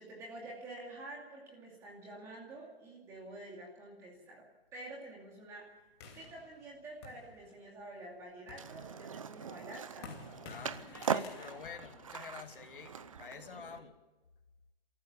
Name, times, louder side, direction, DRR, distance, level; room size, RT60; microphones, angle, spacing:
voice 1, 0.0-4.5 4.7-5.7 6.1-10.4 13.3-13.8, right 1 dB, 10° right, -1 dB, 2.4 m, -49 dB
sound 1, 6.0-7.8 8.3-12.9, left 4 dB, 25° left, 2.6 m, -52 dB
Skateboard, 8.5-13.8, right 7 dB, 35° right, 0.7 m, -40 dB
voice 2, 10.5-13.9, left 6 dB, 60° left, 5 dB, 2.6 m, -48 dB
28.5 x 14.0 x 7.1 m, 1.1 s
hypercardioid pair, 175°, 31 cm